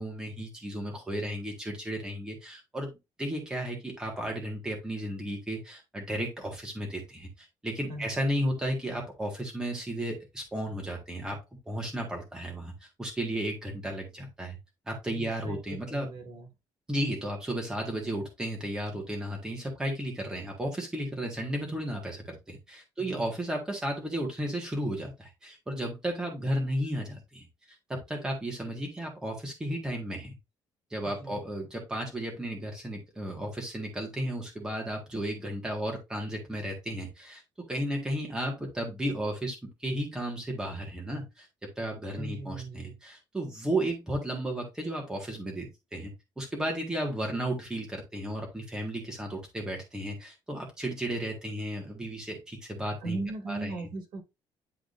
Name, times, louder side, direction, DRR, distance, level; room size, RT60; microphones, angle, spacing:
voice 1, 0.0-2.9 3.2-11.4 11.7-12.7 13.0-14.6 14.9-16.1 16.9-27.4 27.9-30.3 30.9-37.4 37.7-41.5 41.8-53.2 53.5-53.7, right 1 dB, 10° right, 1.6 m, -34 dB
voice 2, 15.1-16.5 23.0-23.3 31.0-31.4 42.1-43.0 53.0-54.2, right 2 dB, 65° right, 2.2 m, -38 dB
10.0 x 3.7 x 2.5 m
cardioid pair, 170°, 9 cm